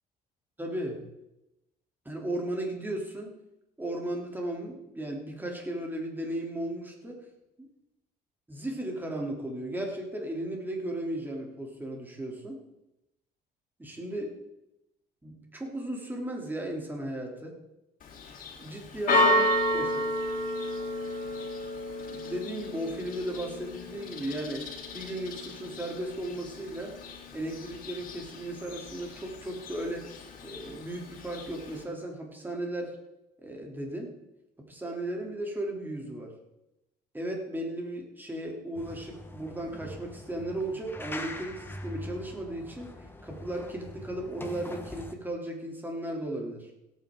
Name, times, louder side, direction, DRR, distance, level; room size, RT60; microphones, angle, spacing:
voice 1, 0.6-1.0 2.0-3.3 3.8-7.3 7.6-7.7 8.5-12.6 13.8-14.4 15.2-17.6 18.6-19.4 19.7-20.1 22.1-27.0 27.3-30.1 30.4-33.0 33.4-34.2 34.7-36.3 37.1-46.7, right 1 dB, 10° right, 0 dB, 3.2 m, -35 dB
Church bell, 18.0-31.8, left 1 dB, 55° left, 3.0 m, -32 dB
sound 1, 38.8-45.1, left 1 dB, 15° left, 1.4 m, -43 dB
17.0 x 9.2 x 3.8 m, 0.90 s
cardioid pair, 110°, 17 cm